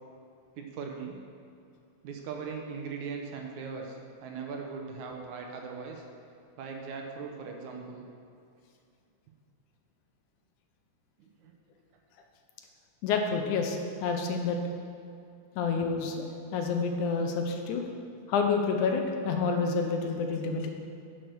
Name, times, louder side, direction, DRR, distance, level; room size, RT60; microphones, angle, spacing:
voice 1, 0.5-1.2 2.0-6.0 6.6-8.1 11.2-11.5, right 5 dB, 70° right, 2 dB, 2.4 m, -39 dB
voice 2, 13.0-14.6 15.6-16.3 16.5-17.8 18.3-20.7, left 4 dB, 75° left, 4 dB, 2.3 m, -28 dB
10.5 x 6.7 x 6.2 m, 2.5 s
omnidirectional pair, 3.6 m